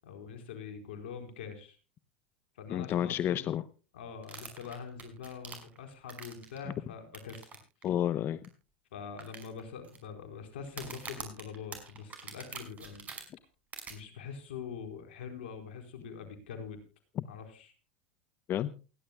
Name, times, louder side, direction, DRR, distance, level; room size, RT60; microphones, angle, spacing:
voice 1, 0.0-1.8 2.6-3.4 3.9-7.5 8.9-13.1 13.9-16.8 17.3-17.7, left 6 dB, 80° left, 6 dB, 4.4 m, -44 dB
voice 2, 2.7-3.6 7.8-8.5 17.2-17.3 18.5-18.7, left 11 dB, 40° left, 15 dB, 0.8 m, -30 dB
sound 1, 4.2-6.6 7.1-7.6 7.8-7.9 8.4-8.5 9.2-10.0 10.7-13.2 13.7-13.9, right 5 dB, 25° right, 5.6 m, -44 dB
28.5 x 11.0 x 2.3 m, 0.32 s
hypercardioid pair, 105°, 6 cm